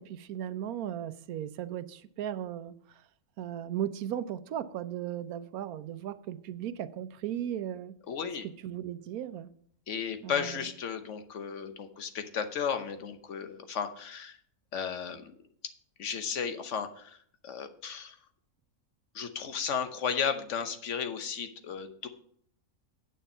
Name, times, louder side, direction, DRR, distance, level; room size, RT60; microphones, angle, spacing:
voice 1, 0.0-2.7 3.4-7.9 8.6-9.5 10.2-10.6, right 10 dB, 80° right, 1.1 m, -36 dB
voice 2, 8.1-8.5 9.9-14.4 14.7-15.3 16.0-17.2 17.4-18.2 19.1-22.1, left 7 dB, 60° left, 1.2 m, -34 dB
8.9 x 6.5 x 5.5 m
omnidirectional pair, 1.5 m